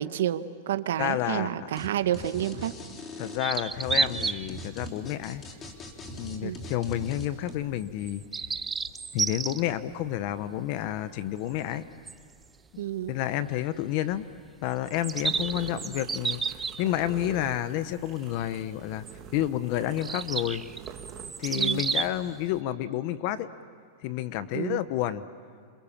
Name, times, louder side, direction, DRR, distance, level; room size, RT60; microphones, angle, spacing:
voice 1, 0.0-2.7 6.4-6.6 12.8-13.1 21.5-21.8 24.5-24.8, right 11 dB, 80° right, 10 dB, 1.4 m, -29 dB
voice 2, 1.0-1.7 3.2-5.4 6.2-8.2 9.1-11.8 13.1-14.3 14.6-16.4 16.8-19.0 19.3-20.6 21.4-23.5 24.0-25.2, left 13 dB, 45° left, 13 dB, 1.0 m, -30 dB
sound 1, 1.8-1.9 2.1-7.5, equal, 20° left, 2.9 m, -40 dB
sound 2, 3.4-4.5 5.0-5.2 6.0-6.2 8.0-9.6 12.1-12.2 12.4-12.5 14.9-17.3 19.1-19.2 20.0-22.2, right 5 dB, 10° right, 0.6 m, -31 dB
sound 3, 15.0-22.1, right 8 dB, 25° right, 2.6 m, -46 dB
28.0 x 27.0 x 7.4 m, 2.2 s
supercardioid pair, 155°, 0 cm